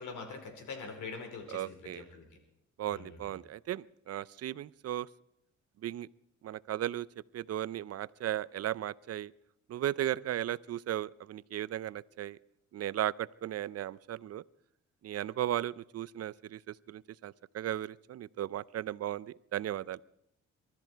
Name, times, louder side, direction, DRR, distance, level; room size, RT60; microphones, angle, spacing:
voice 1, 0.0-2.3 2.9-3.2, left 4 dB, 80° left, 4 dB, 4.8 m, -43 dB
voice 2, 1.5-2.0 2.8-5.1 5.8-6.1 6.4-7.1 7.3-9.3 9.7-12.4 12.7-14.4 15.0-20.0, right 12 dB, 55° right, 20 dB, 0.6 m, -36 dB
23.0 x 13.5 x 4.6 m, 0.79 s
cardioid pair, 90°, 30 cm